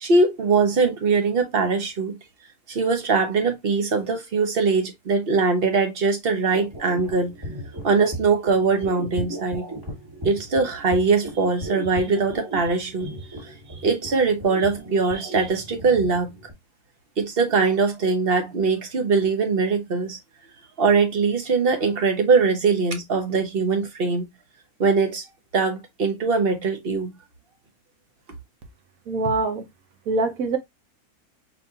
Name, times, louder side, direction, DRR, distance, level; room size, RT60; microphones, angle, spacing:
voice 1, 0.0-2.2 2.7-7.3 7.8-9.7 10.2-13.1 13.4-13.5 13.8-16.4 17.2-20.2 20.8-24.3 24.8-25.2 25.5-27.1, right 4 dB, 45° right, 1.1 m, -22 dB
sound 1, 6.5-16.5, right 1 dB, 15° right, 1.4 m, -36 dB
voice 2, 29.1-29.6 30.1-30.6, right 3 dB, 70° right, 1.4 m, -23 dB
4.6 x 3.5 x 2.8 m
omnidirectional pair, 1.6 m